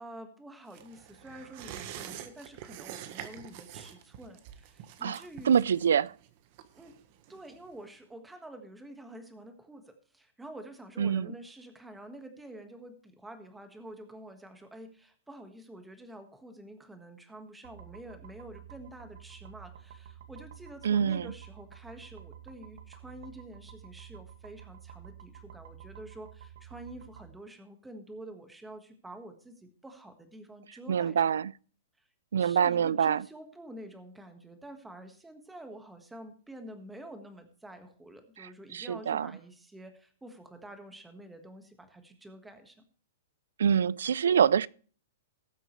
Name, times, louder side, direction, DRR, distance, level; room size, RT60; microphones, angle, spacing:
voice 1, 0.0-5.5 6.7-7.0 7.3-31.2 32.0-32.1 32.4-42.8, right 1 dB, 5° right, 1.5 m, -48 dB
sound 1, 0.7-7.8 8.1-8.2, right 11 dB, 40° right, 1.2 m, -46 dB
voice 2, 5.5-6.1 11.0-11.3 20.8-21.3 30.9-31.5 32.3-33.2 38.7-39.3 43.6-44.7, right 8 dB, 85° right, 0.4 m, -25 dB
sound 2, 17.6-27.3, right 9 dB, 65° right, 2.0 m, -50 dB
18.5 x 7.6 x 3.2 m
hypercardioid pair, 155°, 0 cm